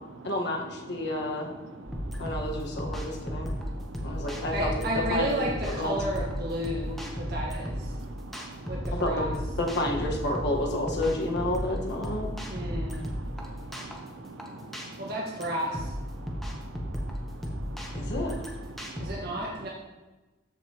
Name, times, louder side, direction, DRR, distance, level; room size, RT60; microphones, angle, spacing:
voice 1, 0.2-1.5 2.2-3.5 4.0-5.9 9.0-9.2 9.6-12.3 17.9-18.3, left 1 dB, 60° left, 0 dB, 1.4 m, -30 dB
sound 1, 1.9-19.1, equal, ahead, 1.0 m, -35 dB
voice 2, 1.9-2.2 3.5-4.3 7.9-8.9 12.4-15.1 16.1-18.1 18.7-19.1, right 2 dB, 70° right, 7 dB, 0.6 m, -45 dB
voice 3, 4.5-7.9 8.7-9.3 12.5-13.0 15.0-15.9 19.0-19.7, right 1 dB, 50° right, -3 dB, 1.3 m, -32 dB
13.5 x 5.3 x 2.9 m, 1.1 s
head